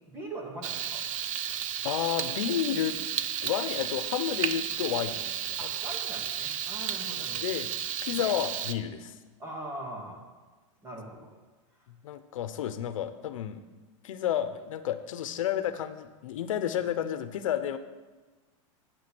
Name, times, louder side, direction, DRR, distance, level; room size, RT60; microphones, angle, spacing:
voice 1, 0.1-1.0 5.6-7.4 8.2-8.3 9.4-10.2 10.8-11.3, right 1 dB, 15° right, -1 dB, 2.5 m, -41 dB
Frying (food), 0.6-8.7, right 9 dB, 90° right, 0.8 m, -33 dB
voice 2, 1.8-3.0 3.4-5.7 7.4-7.7 8.0-9.1 12.0-13.6 14.0-17.8, left 10 dB, 90° left, 10 dB, 0.9 m, -31 dB
12.0 x 8.4 x 6.2 m, 1.3 s
supercardioid pair, 160°, 17 cm